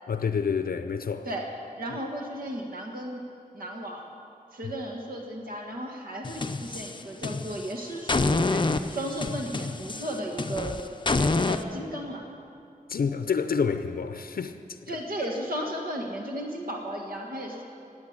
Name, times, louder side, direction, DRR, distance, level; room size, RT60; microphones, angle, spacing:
voice 1, 0.1-1.3 4.6-4.7 12.9-14.5, left 6 dB, 75° left, 0.6 m, -28 dB
voice 2, 1.8-3.2 3.5-4.0 4.5-8.6 8.9-10.8 11.1-12.3 14.9-17.6, right 1 dB, 75° right, 1.7 m, -34 dB
sound 1, 6.2-7.7 8.1-11.6, left 3 dB, 30° left, 0.6 m, -27 dB
16.5 x 8.7 x 8.8 m
wide cardioid pair, 95°, 15 cm